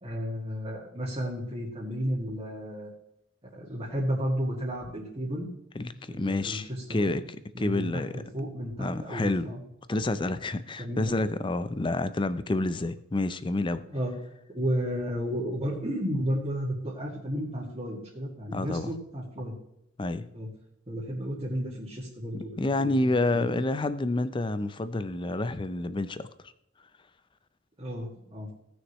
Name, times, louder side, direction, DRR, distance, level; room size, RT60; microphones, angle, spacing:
voice 1, 0.0-2.9 3.4-5.5 5.9-7.2 7.5-9.6 10.8-11.2 13.9-14.1 14.5-19.5 20.3-20.5 20.9-23.6 27.8-28.5, equal, 25° right, -7 dB, 2.1 m, -33 dB
voice 2, 5.8-7.2 7.6-8.2 8.8-9.5 9.9-13.8 18.5-18.9 20.0-20.3 22.6-26.3, left 2 dB, 25° left, 13 dB, 0.5 m, -29 dB
17.0 x 6.5 x 3.1 m, 0.81 s
head